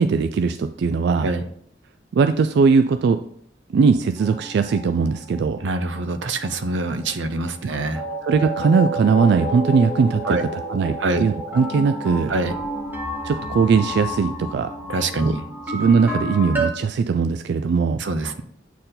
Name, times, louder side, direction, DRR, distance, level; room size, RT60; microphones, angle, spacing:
voice 1, 0.0-1.3 2.1-3.2 3.7-5.6 8.2-10.4 10.7-12.3 13.2-14.7 15.2-15.4 15.7-18.0, right 5 dB, 65° right, 9 dB, 0.3 m, -19 dB
sound 1, 4.2-7.7 8.0-16.7, equal, 10° right, 1.1 m, -31 dB
voice 2, 5.6-8.1 10.3-10.4 11.0-11.2 12.3-12.5 14.9-15.4 18.0-18.4, right 2 dB, 90° right, 10 dB, 0.7 m, -25 dB
8.3 x 4.4 x 3.9 m, 0.67 s
head